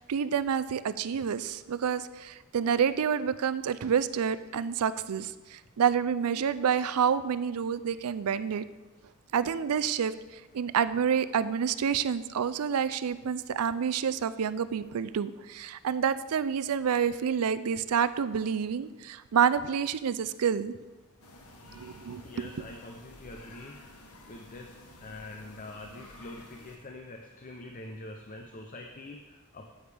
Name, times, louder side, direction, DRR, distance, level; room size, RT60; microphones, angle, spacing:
voice 1, 0.0-8.7 9.3-20.8 21.7-22.5, right 7 dB, 75° right, 14 dB, 0.4 m, -28 dB
sound 1, 21.2-26.8, left 1 dB, 75° left, 1.2 m, -51 dB
voice 2, 22.2-23.7 24.3-29.7, left 2 dB, 35° left, 3 dB, 0.6 m, -45 dB
9.4 x 8.7 x 3.4 m, 1.2 s
head